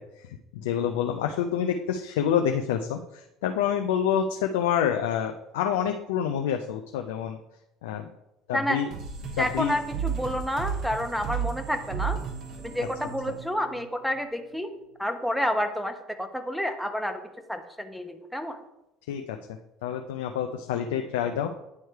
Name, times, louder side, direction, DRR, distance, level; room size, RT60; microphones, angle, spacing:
voice 1, 0.0-7.4 7.8-8.1 8.5-8.9 9.2-9.7 19.1-19.4 19.8-21.5, left 8 dB, 85° left, 5 dB, 0.4 m, -27 dB
sound 1, 8.9-14.2, right 7 dB, 60° right, 1.7 m, -34 dB
voice 2, 9.4-12.2 12.6-14.7 15.0-17.2 17.5-18.6, equal, ahead, 6 dB, 0.8 m, -29 dB
9.5 x 3.2 x 4.5 m, 0.90 s
supercardioid pair, 80°, 0 cm